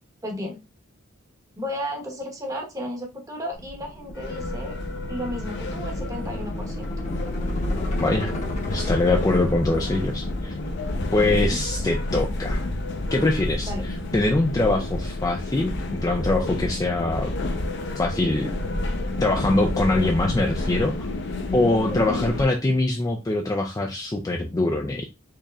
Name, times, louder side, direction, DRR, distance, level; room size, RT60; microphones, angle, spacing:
voice 1, 0.2-0.6 1.6-4.7 5.1-6.9 11.4-11.6 13.6-13.8 21.9-22.3, equal, 15° right, 1 dB, 1.0 m, -33 dB
sound 1, 3.5-11.7, left 1 dB, 35° left, 0.9 m, -37 dB
sound 2, 4.2-22.5, left 2 dB, 55° left, 0.6 m, -29 dB
voice 2, 8.0-8.3 8.7-10.5 11.1-12.7 13.1-13.7 14.1-17.3 18.0-18.6 19.2-20.9 21.5-25.0, left 2 dB, 15° left, 3 dB, 0.3 m, -23 dB
4.6 x 3.0 x 2.3 m, 0.26 s
head